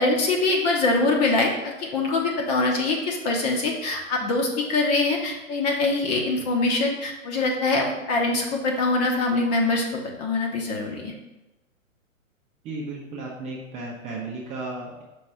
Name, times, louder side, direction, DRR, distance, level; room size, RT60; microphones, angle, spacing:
voice 1, 0.0-11.1, left 3 dB, 30° left, 0 dB, 1.2 m, -24 dB
voice 2, 12.6-15.0, right 2 dB, 15° right, -4 dB, 0.9 m, -34 dB
5.5 x 4.3 x 5.7 m, 1.0 s
figure-of-eight pair, 115°, 41 cm